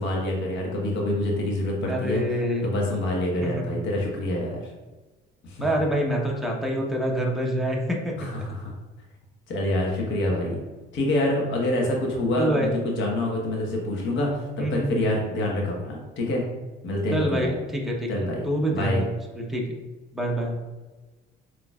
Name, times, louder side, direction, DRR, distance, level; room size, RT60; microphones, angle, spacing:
voice 1, 0.0-2.2 2.6-4.7 5.4-5.7 8.2-8.7 9.5-10.6 10.9-16.4 16.8-17.5 18.1-19.0, left 1 dB, 65° left, -1 dB, 1.3 m, -26 dB
voice 2, 1.8-2.7 3.4-3.8 5.6-8.3 12.4-12.7 14.6-15.0 17.1-18.1 18.4-19.1 19.3-19.7 20.1-20.6, right 1 dB, ahead, -1 dB, 0.9 m, -26 dB
6.3 x 3.1 x 2.4 m, 1.2 s
cardioid pair, 105°, 21 cm